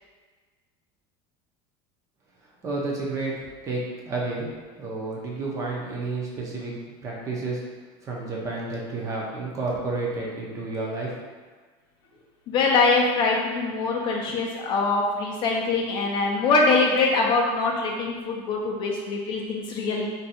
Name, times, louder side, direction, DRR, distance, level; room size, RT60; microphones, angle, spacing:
voice 1, 2.6-3.8 4.1-4.5 4.8-6.7 7.0-7.6 8.0-11.1, right 3 dB, 25° right, -3 dB, 0.5 m, -30 dB
voice 2, 12.5-20.1, left 3 dB, 35° left, -1 dB, 0.4 m, -23 dB
2.6 x 2.3 x 4.1 m, 1.4 s
cardioid pair, 160°, 13 cm